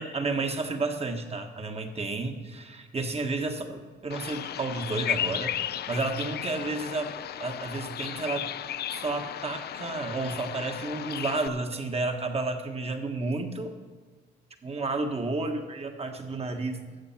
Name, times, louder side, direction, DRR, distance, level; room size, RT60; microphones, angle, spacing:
voice 1, 0.0-8.5 8.9-13.7 14.6-16.8, right 3 dB, 30° right, 5 dB, 1.5 m, -31 dB
Bird vocalization bird call bird song, 4.1-11.5, left 11 dB, 55° left, 0.4 m, -34 dB
13.5 x 7.6 x 5.9 m, 1.4 s
cardioid pair, 90°, 20 cm